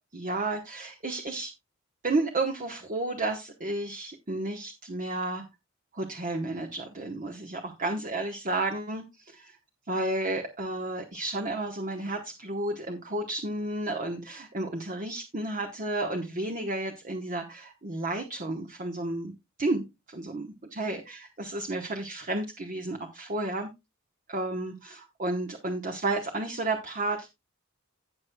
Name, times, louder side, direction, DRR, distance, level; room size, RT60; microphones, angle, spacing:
voice 1, 0.1-1.5 2.0-5.4 5.9-9.6 9.9-19.3 19.6-23.7 24.3-27.3, right 2 dB, 40° right, 3 dB, 1.0 m, -32 dB
17.0 x 6.1 x 2.2 m, 0.23 s
head